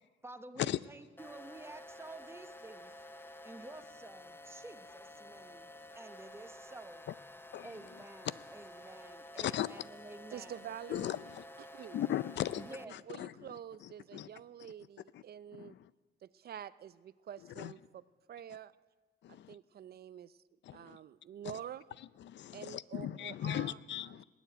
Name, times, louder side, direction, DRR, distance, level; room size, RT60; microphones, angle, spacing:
voice 1, 0.2-2.9 3.4-5.7 5.9-7.1 7.6-10.5 12.6-13.1, right 2 dB, 10° right, 1.1 m, -51 dB
sound 1, 1.2-12.9, left 1 dB, 10° left, 0.6 m, -51 dB
voice 2, 9.4-9.7 10.9-11.4 11.9-13.5 13.8-14.3 15.1-15.2 15.6-15.9 17.6-17.7 19.2-19.6 20.6-21.0 21.4-21.5 22.2-24.2, left 12 dB, 65° left, 0.5 m, -38 dB
voice 3, 10.3-11.2 11.6-12.0 13.1-15.7 16.2-18.0 18.3-18.7 19.3-20.4 20.7-21.8 22.5-23.8, right 9 dB, 50° right, 0.5 m, -47 dB
20.5 x 7.2 x 9.1 m
cardioid pair, 90°, 20 cm